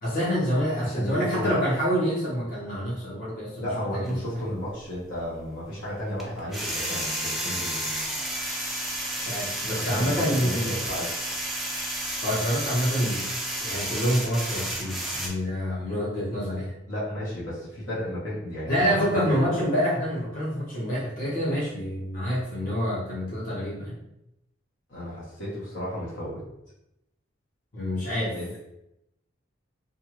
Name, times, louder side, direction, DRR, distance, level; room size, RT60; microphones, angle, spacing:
voice 1, 0.0-3.7 3.9-4.2 9.2-10.8 12.2-13.3 13.6-16.7 18.7-23.9 27.7-28.4, equal, 45° left, -8 dB, 1.0 m, -27 dB
voice 2, 0.8-1.5 3.6-7.8 9.7-11.1 16.9-19.3 24.9-26.4 28.3-28.6, left 1 dB, 70° left, -7 dB, 1.1 m, -33 dB
sound 1, 4.1-4.2 6.2-15.3, right 1 dB, ahead, 0.4 m, -31 dB
2.5 x 2.4 x 3.0 m, 0.86 s
head